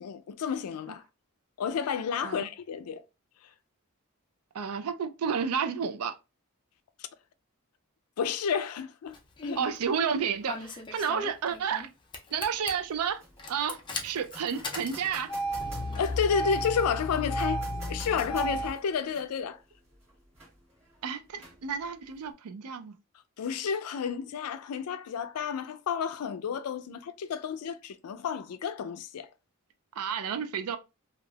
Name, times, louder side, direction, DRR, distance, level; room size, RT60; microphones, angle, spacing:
voice 1, 0.0-1.0 1.6-3.0 8.2-9.2 9.4-9.6 16.0-19.6 23.4-29.3, left 6 dB, 90° left, 0.4 m, -31 dB
voice 2, 4.5-6.1 9.6-11.9 12.3-13.2 13.5-15.3 21.0-22.9 30.0-30.8, right 7 dB, 85° right, 0.4 m, -31 dB
Engine starting, 9.1-9.7 10.5-11.9 12.1-12.7 13.4-18.7, equal, 20° left, 0.4 m, -34 dB
sound 1, 12.3-22.3, right 1 dB, 30° right, 1.2 m, -52 dB
3.3 x 2.4 x 2.2 m
head